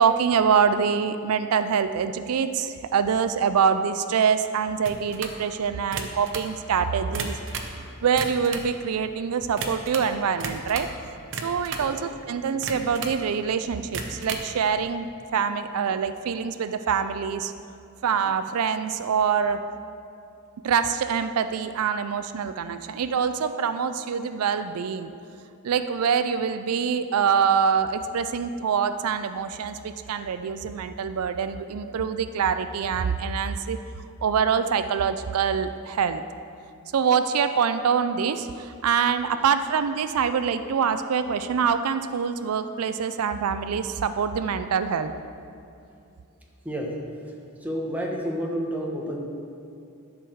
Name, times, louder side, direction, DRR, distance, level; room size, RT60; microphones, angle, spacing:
voice 1, 0.0-7.4 7.7-10.9 11.4-17.5 18.0-19.7 20.6-25.1 25.6-33.8 34.2-36.2 36.9-45.1, right 6 dB, 85° right, 11 dB, 0.4 m, -25 dB
sound 1, 4.9-5.4 5.8-6.5 7.0-7.8 8.1-8.7 9.6-10.1 10.4-11.0 11.3-11.9 12.6-13.2 13.8-14.5, right 5 dB, 60° right, 0.8 m, -34 dB
voice 2, 11.7-12.0 39.3-39.5 46.6-47.0 47.3-47.4 47.6-49.2, equal, 5° right, -1 dB, 1.0 m, -31 dB
11.0 x 4.8 x 6.2 m, 2.6 s
head